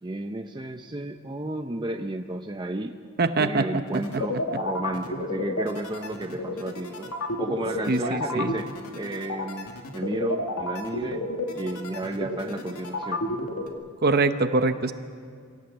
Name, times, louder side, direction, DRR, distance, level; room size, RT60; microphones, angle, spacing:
voice 1, 0.0-3.0 3.4-11.3 11.5-13.4, right 2 dB, 20° right, 5 dB, 0.7 m, -33 dB
voice 2, 3.2-4.2 7.9-8.5 14.0-14.9, right 3 dB, 45° right, 9 dB, 1.0 m, -24 dB
sound 1, 3.9-13.7, left 2 dB, 85° left, 2.3 m, -31 dB
24.5 x 17.5 x 8.0 m, 2.1 s
head